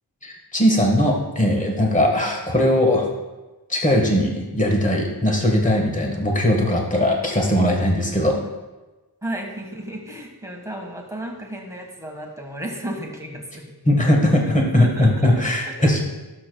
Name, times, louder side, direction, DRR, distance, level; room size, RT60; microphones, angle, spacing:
voice 1, 0.2-3.1 3.7-8.4 13.8-16.0, left 1 dB, 20° left, 0 dB, 1.5 m, -19 dB
voice 2, 9.2-13.6 14.8-15.3 15.7-15.8, right 1 dB, 10° right, 0 dB, 1.5 m, -33 dB
12.5 x 6.7 x 2.3 m, 1.1 s
wide cardioid pair, 50°, 39 cm